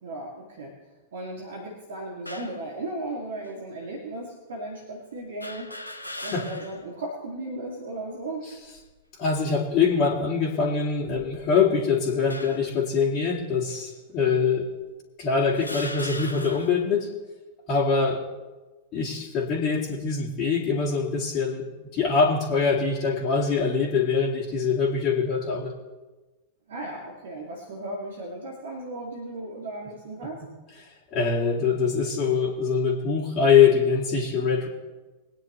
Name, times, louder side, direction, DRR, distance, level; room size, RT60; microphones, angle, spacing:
voice 1, 0.0-0.7 1.1-5.7 6.2-8.5 26.7-30.4, right 1 dB, 60° right, -2 dB, 2.3 m, -36 dB
sound 1, 2.2-2.6 3.5-3.6 5.4-6.9 7.3-7.4 8.5-9.0 9.7-9.9 10.9-11.7 12.3-12.8 13.7-13.8 14.7-14.8 15.5-16.9, left 1 dB, 85° left, 0.9 m, -39 dB
voice 2, 9.2-14.7 15.2-17.1 17.7-18.2 18.9-21.6 21.9-25.8 31.1-34.7, left 5 dB, 35° left, -5 dB, 2.2 m, -23 dB
22.0 x 9.5 x 3.1 m, 1.2 s
figure-of-eight pair, 90°, 0 cm